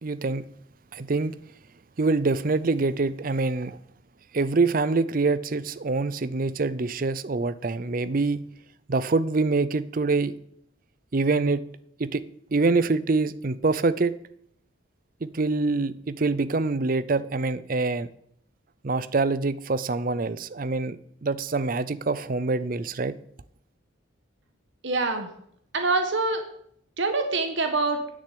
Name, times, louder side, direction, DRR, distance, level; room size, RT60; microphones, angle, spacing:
voice 1, 0.0-0.4 0.9-1.3 2.0-3.8 4.3-8.4 8.9-10.4 11.1-11.6 12.0-12.2 12.5-14.1 15.2-18.1 18.8-23.2, right 3 dB, 45° right, 0.5 m, -25 dB
voice 2, 24.8-25.3 25.7-26.4 27.0-28.0, right 3 dB, 65° right, 1.3 m, -25 dB
10.0 x 6.5 x 8.5 m
head